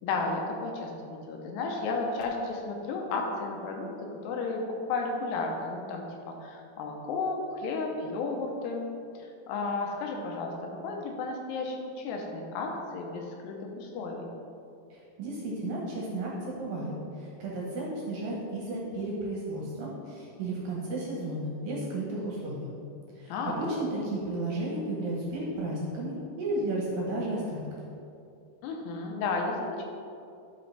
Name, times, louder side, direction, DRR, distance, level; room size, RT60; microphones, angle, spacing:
voice 1, 0.0-3.9 4.2-4.6 4.9-8.8 9.5-14.3 23.3-23.5 28.6-29.8, left 3 dB, 80° left, 1 dB, 2.8 m, -33 dB
voice 2, 14.9-22.7 23.2-27.6, right 1 dB, 70° right, -4 dB, 2.3 m, -33 dB
12.0 x 5.1 x 3.3 m, 2.6 s
omnidirectional pair, 4.9 m